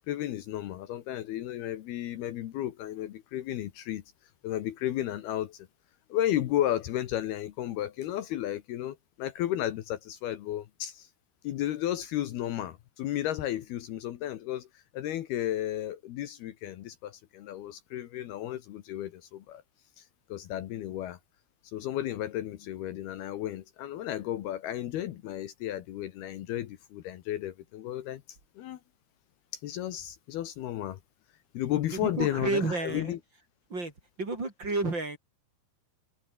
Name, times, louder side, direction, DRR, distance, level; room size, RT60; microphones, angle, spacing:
voice 1, 0.1-4.0 4.4-5.7 6.1-11.1 11.4-14.7 14.9-19.6 20.0-20.1 20.3-21.2 21.7-28.2 28.6-28.8 29.5-31.0 31.5-33.2, left 12 dB, 70° left, 3.1 m, -33 dB
voice 2, 31.9-33.2 33.7-33.9 34.2-35.2, right 3 dB, 25° right, 4.4 m, -31 dB
omnidirectional pair, 4.9 m